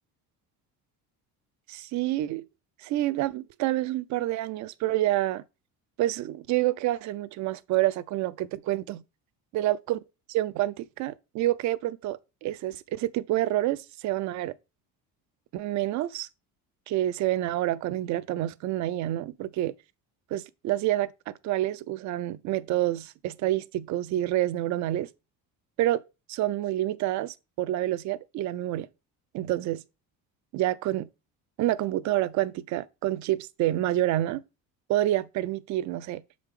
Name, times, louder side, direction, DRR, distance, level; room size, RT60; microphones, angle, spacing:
voice 1, 1.7-2.4 2.8-5.4 6.0-9.0 9.5-10.0 10.3-14.5 15.5-16.3 16.9-19.7 20.3-25.1 25.8-26.0 26.3-28.9 29.3-29.8 30.5-31.1 31.6-34.4 34.9-36.2, right 14 dB, 50° right, 0.5 m, -28 dB
6.6 x 5.0 x 3.6 m
cardioid pair, 170°, 37 cm